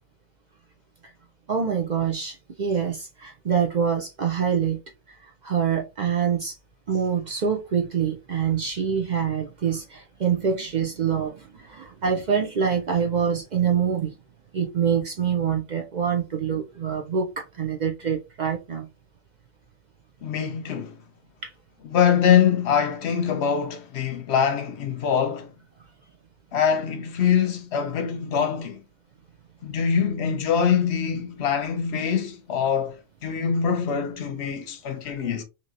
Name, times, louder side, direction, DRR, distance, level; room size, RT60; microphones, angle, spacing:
voice 1, 1.5-4.8 5.4-6.6 6.9-14.1 14.5-18.9 21.4-21.5, right 7 dB, 60° right, 0.4 m, -25 dB
voice 2, 20.2-21.0 21.8-25.5 26.5-28.8 29.6-35.4, left 7 dB, 65° left, 0.8 m, -24 dB
2.9 x 2.8 x 2.5 m
omnidirectional pair, 1.4 m